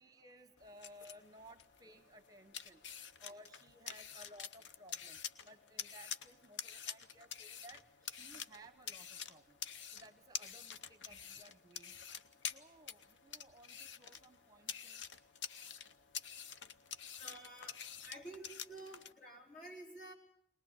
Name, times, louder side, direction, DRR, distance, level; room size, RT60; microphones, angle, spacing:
voice 1, 0.0-2.8 3.2-9.6 9.9-12.0 12.5-15.1, right 1 dB, 20° right, 10 dB, 1.0 m, -59 dB
sound 1, 0.6-19.1, left 8 dB, 85° left, 0.8 m, -48 dB
voice 2, 17.2-20.1, right 1 dB, 45° left, 1 dB, 4.1 m, -51 dB
21.5 x 20.0 x 8.2 m, 0.72 s
head